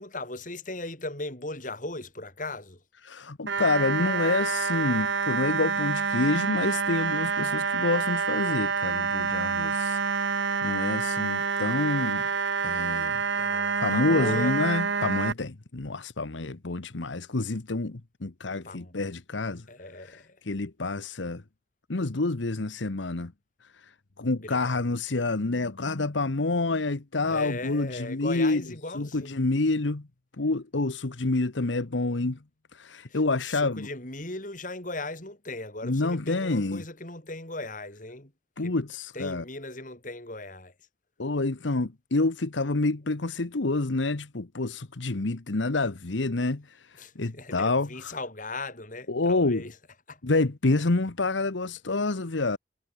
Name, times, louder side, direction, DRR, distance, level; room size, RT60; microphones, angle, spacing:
voice 1, 0.0-2.8 13.3-14.6 18.6-19.0 19.7-20.4 24.4-24.8 27.3-29.5 33.1-38.3 38.6-38.7 39.1-40.7 47.0-49.8 50.1-50.2, left 2 dB, 45° left, 5.5 m, -38 dB
voice 2, 3.0-10.0 10.6-12.3 12.6-13.2 13.8-19.6 20.0-20.2 20.5-21.4 21.9-23.3 23.6-28.6 28.9-30.1 30.4-32.4 32.7-33.9 35.8-36.8 38.6-39.4 41.2-48.1 49.1-49.6 50.2-52.6, left 2 dB, 85° left, 1.1 m, -28 dB
sound 1, 3.5-15.3, right 5 dB, 75° right, 1.2 m, -27 dB
head